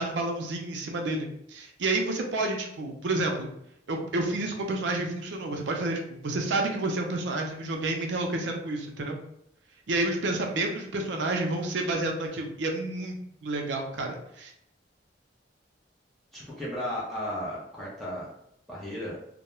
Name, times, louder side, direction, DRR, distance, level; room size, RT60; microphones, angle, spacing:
voice 1, 0.0-3.5 3.9-9.2 9.9-13.2 13.4-14.5, right 2 dB, 80° right, 2 dB, 0.5 m, -30 dB
voice 2, 16.3-18.3 18.7-19.2, equal, ahead, -8 dB, 0.6 m, -34 dB
2.2 x 2.1 x 3.0 m, 0.75 s
head